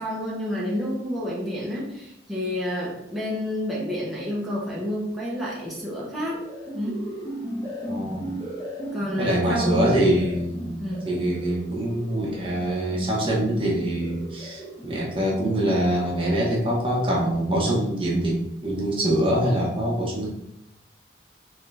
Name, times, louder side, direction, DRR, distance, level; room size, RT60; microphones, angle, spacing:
voice 1, 0.0-6.4 6.7-7.1 8.9-9.9 10.8-11.1, equal, ahead, -5 dB, 0.8 m, -29 dB
sound 1, 6.1-16.6, right 1 dB, 20° left, 1.1 m, -37 dB
voice 2, 7.9-8.3 9.2-20.3, right 1 dB, 30° right, -3 dB, 0.8 m, -24 dB
3.7 x 3.2 x 3.4 m, 0.81 s
head